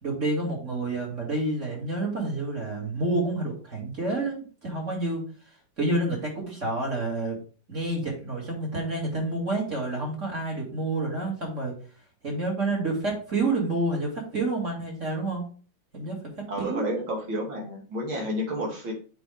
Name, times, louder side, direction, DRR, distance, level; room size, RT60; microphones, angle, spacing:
voice 1, 0.0-5.2 5.8-7.4 7.7-11.7 12.2-15.4 15.9-16.8, right 2 dB, 35° right, -2 dB, 2.8 m, -29 dB
voice 2, 16.5-18.9, equal, 65° right, -1 dB, 3.1 m, -30 dB
7.7 x 5.2 x 3.5 m, 0.39 s
omnidirectional pair, 2.4 m